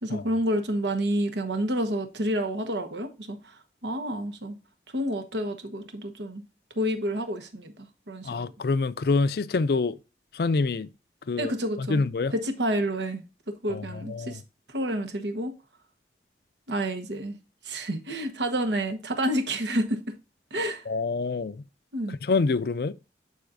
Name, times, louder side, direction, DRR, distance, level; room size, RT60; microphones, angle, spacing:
voice 1, 0.0-4.5 4.9-6.4 6.7-8.5 11.4-12.0 12.3-13.2 13.6-14.4 14.7-15.5 16.7-17.4 17.6-20.1 20.5-20.9 21.9-22.2, right 1 dB, 85° right, 1.2 m, -29 dB
voice 2, 8.2-10.0 10.3-10.9 11.3-11.5 11.8-12.3 13.7-13.8 14.1-14.4 20.9-21.6 22.2-22.9, left 4 dB, 60° left, 0.4 m, -26 dB
11.5 x 4.2 x 2.6 m
head